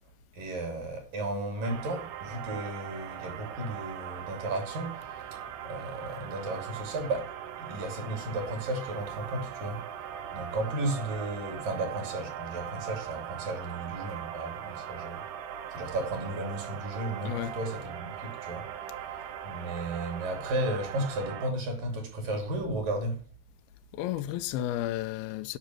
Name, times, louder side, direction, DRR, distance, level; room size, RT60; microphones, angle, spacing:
voice 1, 0.3-7.3 7.6-9.8 10.3-15.2 15.7-18.7 19.4-23.2, right 2 dB, 55° right, 4.1 m, -34 dB
sound 1, 1.6-21.5, right 10 dB, 75° right, 2.0 m, -40 dB
voice 2, 17.2-17.5 23.9-25.6, left 13 dB, 80° left, 2.3 m, -32 dB
10.5 x 6.2 x 7.5 m
omnidirectional pair, 5.0 m